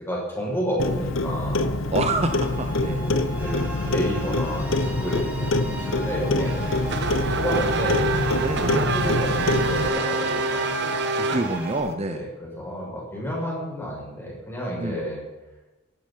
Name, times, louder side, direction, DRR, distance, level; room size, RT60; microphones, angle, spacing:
voice 1, 0.0-1.7 2.8-6.5 7.0-8.3 8.6-10.7 12.1-15.2, equal, 10° left, -4 dB, 6.8 m, -31 dB
Clock, 0.8-9.9, left 2 dB, 85° left, 1.0 m, -25 dB
voice 2, 1.9-3.0 5.7-6.0 7.5-7.8 8.4-8.9 11.2-12.2 14.8-15.0, right 2 dB, 35° right, 7 dB, 0.8 m, -28 dB
sound 1, 2.2-11.8, right 2 dB, 10° right, 4.1 m, -37 dB
Race car auto racing / Accelerating revving vroom, 6.5-11.9, right 3 dB, 60° right, 1.2 m, -26 dB
17.5 x 12.0 x 5.7 m, 1.1 s
head